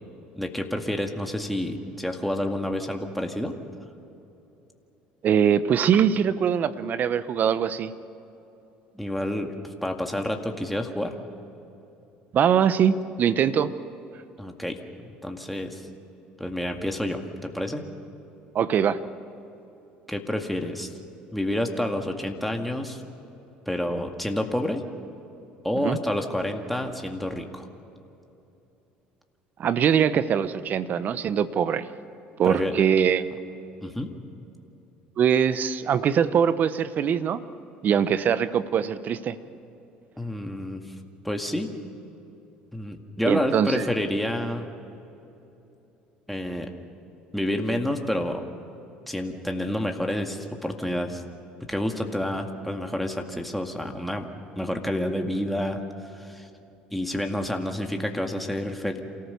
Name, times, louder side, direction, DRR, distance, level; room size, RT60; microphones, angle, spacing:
voice 1, 0.4-3.6 8.9-9.5 9.8-11.1 14.4-15.8 16.4-17.8 20.1-20.9 21.3-23.0 23.7-24.8 25.6-27.7 32.4-32.8 33.8-34.1 40.2-40.8 41.2-41.7 42.7-44.7 46.3-46.7 47.3-48.4 49.1-51.2 51.7-54.3 54.6-55.8 56.1-56.5 56.9-59.0, left 1 dB, ahead, 3 dB, 2.0 m, -29 dB
voice 2, 5.2-7.9 12.3-13.7 18.5-19.0 25.8-26.0 29.6-31.9 32.4-33.2 35.2-37.4 37.8-39.4 43.2-43.8, right 8 dB, 50° right, 14 dB, 0.9 m, -22 dB
28.0 x 14.5 x 6.9 m, 2.9 s
hypercardioid pair, 75°, 4 cm